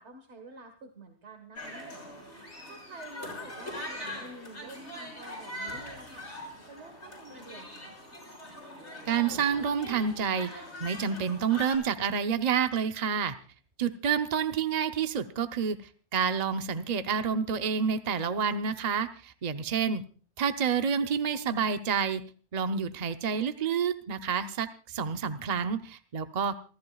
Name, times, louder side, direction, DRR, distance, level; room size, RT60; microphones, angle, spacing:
voice 1, 0.0-2.0 2.7-6.3 6.7-8.0, right 2 dB, 75° right, 5 dB, 1.8 m, -48 dB
sound 1, 1.6-11.8, left 1 dB, 85° left, 6.9 m, -42 dB
voice 2, 9.1-10.5 10.8-13.3 13.8-15.8 16.1-20.0 20.4-22.2 22.5-26.6, right 6 dB, 40° right, 8 dB, 0.8 m, -28 dB
28.5 x 14.0 x 2.4 m, 0.40 s
omnidirectional pair, 1.2 m